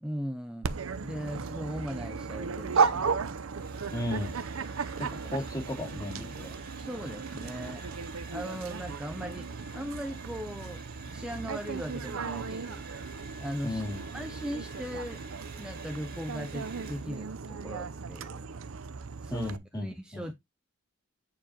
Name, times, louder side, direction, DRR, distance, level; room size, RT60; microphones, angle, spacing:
voice 1, 0.0-3.2 6.8-7.9 8.3-10.8 11.1-12.8 13.4-13.8 14.1-15.2 15.5-18.5 19.2-20.3, equal, 5° right, 0.6 m, -39 dB
Dog, 0.6-19.6, right 5 dB, 85° right, 0.7 m, -35 dB
Domestic sounds home sounds, 3.1-17.4, right 4 dB, 50° right, 2.1 m, -50 dB
voice 2, 3.9-4.4 5.0-6.5 13.6-14.1 19.3-20.3, left 1 dB, 20° left, 2.4 m, -35 dB
8.6 x 4.8 x 2.8 m
head